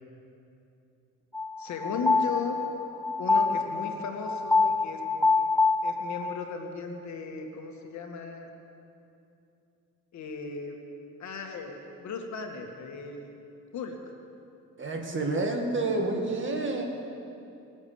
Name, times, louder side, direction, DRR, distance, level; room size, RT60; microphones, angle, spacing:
sound 1, 1.3-6.5, left 3 dB, 5° left, 0.7 m, -26 dB
voice 1, 1.6-2.7 3.2-5.2 5.8-8.5 10.1-10.8 11.2-13.3 13.7-14.1, left 4 dB, 70° left, 3 dB, 1.8 m, -36 dB
voice 2, 14.8-16.8, right 2 dB, 40° right, 2 dB, 2.1 m, -29 dB
20.0 x 7.2 x 7.0 m, 2.7 s
cardioid pair, 90°, 30 cm